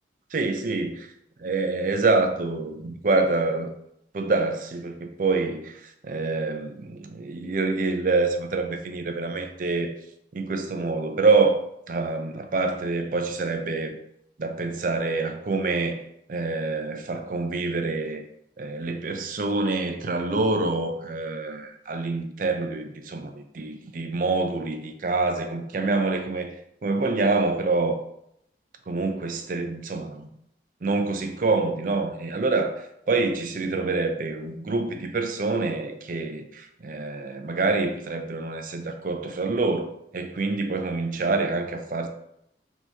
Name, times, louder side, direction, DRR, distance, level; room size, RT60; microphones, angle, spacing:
voice 1, 0.3-1.0 1.4-3.7 4.1-9.9 10.3-11.6 11.9-14.0 14.4-16.0 16.3-18.2 18.6-26.5 26.8-28.0 28.9-30.3 30.8-32.7 33.1-42.1, right 3 dB, 45° right, 0.5 m, -26 dB
4.3 x 2.9 x 3.4 m
head